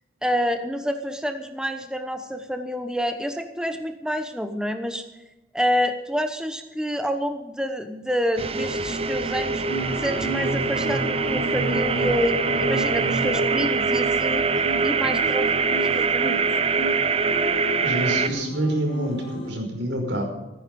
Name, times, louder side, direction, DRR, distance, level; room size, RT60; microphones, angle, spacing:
voice 1, 0.2-5.0 5.5-9.6 10.0-14.5 14.8-16.6, equal, 5° right, 7 dB, 1.0 m, -28 dB
sound 1, 8.4-18.3, right 4 dB, 30° right, 0.7 m, -24 dB
sound 2, 9.7-19.5, right 1 dB, 30° left, 5.4 m, -33 dB
voice 2, 17.8-20.2, right 1 dB, 85° right, 2 dB, 5.3 m, -27 dB
14.5 x 14.5 x 5.4 m, 1.0 s
head